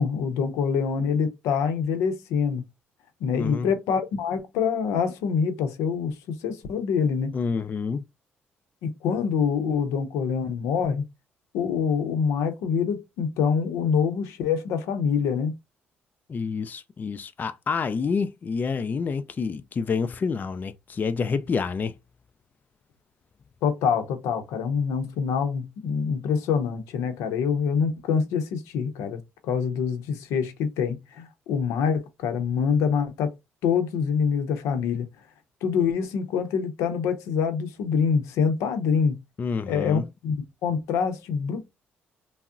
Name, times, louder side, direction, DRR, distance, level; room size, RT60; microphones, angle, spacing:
voice 1, 0.0-2.6 3.2-7.4 8.8-11.0 11.5-15.5 23.6-33.3 33.6-35.1 35.6-39.2 39.7-41.8, left 6 dB, 85° left, 0.6 m, -25 dB
voice 2, 3.3-3.7 7.3-8.0 16.3-21.9 39.4-40.1, left 5 dB, 40° left, 0.4 m, -28 dB
3.5 x 2.0 x 2.4 m
supercardioid pair, 70°, 5 cm